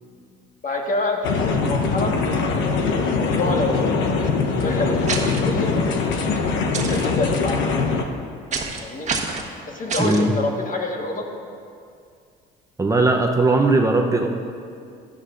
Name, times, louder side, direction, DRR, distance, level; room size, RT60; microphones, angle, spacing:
voice 1, 0.6-2.1 2.8-4.2 4.6-5.7 6.8-7.6 8.8-9.1 9.6-11.2, left 2 dB, 40° left, 1 dB, 1.5 m, -27 dB
sound 1, 1.2-8.0, left 4 dB, 65° left, 1.0 m, -22 dB
sound 2, 5.1-5.4 6.7-7.1 8.5-8.8 9.1-9.5 9.9-10.2, right 4 dB, 35° right, 1.4 m, -27 dB
voice 2, 10.0-10.3 12.8-14.3, right 2 dB, 15° right, 2 dB, 0.8 m, -18 dB
13.0 x 10.5 x 2.6 m, 2.3 s
supercardioid pair, 80°, 21 cm